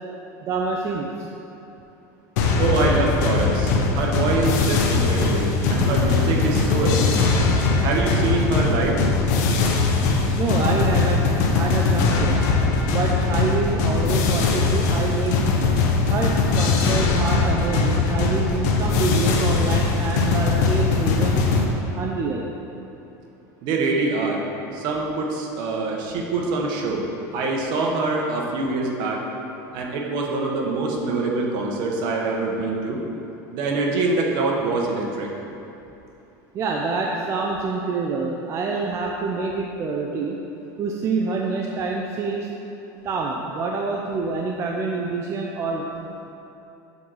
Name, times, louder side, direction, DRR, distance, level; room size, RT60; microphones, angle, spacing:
voice 1, 0.4-1.3 10.3-12.4 12.9-15.3 16.1-22.5 36.5-40.4 40.8-42.5 43.0-45.8, right 4 dB, 30° right, 0 dB, 0.5 m, -27 dB
sound 1, 2.4-21.6, left 4 dB, 75° left, 0.9 m, -20 dB
voice 2, 2.6-7.1 7.8-9.0 23.6-24.4 24.7-27.0 27.3-29.2 29.7-33.0 33.5-35.3, right 3 dB, 55° right, 0 dB, 1.2 m, -24 dB
7.2 x 4.0 x 6.2 m, 2.9 s
supercardioid pair, 135°, 9 cm